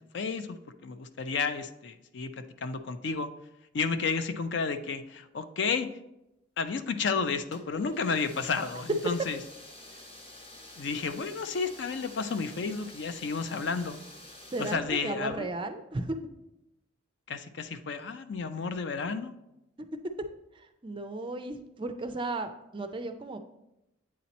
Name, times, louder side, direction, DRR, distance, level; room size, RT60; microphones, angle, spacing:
voice 1, 0.1-3.3 3.7-5.9 6.6-9.4 10.8-14.0 14.6-15.5 17.3-19.3, left 5 dB, 60° left, 10 dB, 0.4 m, -32 dB
sound 1, 7.5-14.8, left 1 dB, 30° left, 0.8 m, -49 dB
voice 2, 14.5-16.2 19.8-19.9 20.5-23.4, right 2 dB, 25° right, 7 dB, 0.4 m, -35 dB
8.5 x 2.9 x 4.1 m, 0.89 s
head